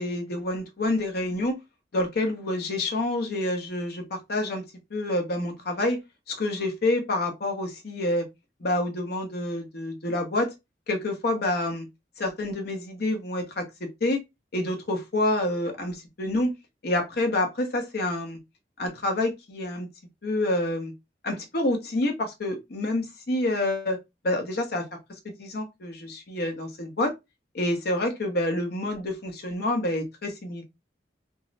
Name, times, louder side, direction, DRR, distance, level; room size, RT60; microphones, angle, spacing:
voice 1, 0.0-1.6 1.9-4.6 4.9-6.0 6.3-8.3 8.6-10.5 10.9-11.9 12.2-13.6 14.0-14.2 14.5-16.6 16.8-18.4 18.8-19.9 20.2-20.9 21.2-24.0 24.2-24.8 25.4-27.1 27.5-30.6, left 1 dB, 60° left, 0.8 m, -27 dB
3.5 x 2.0 x 2.5 m
head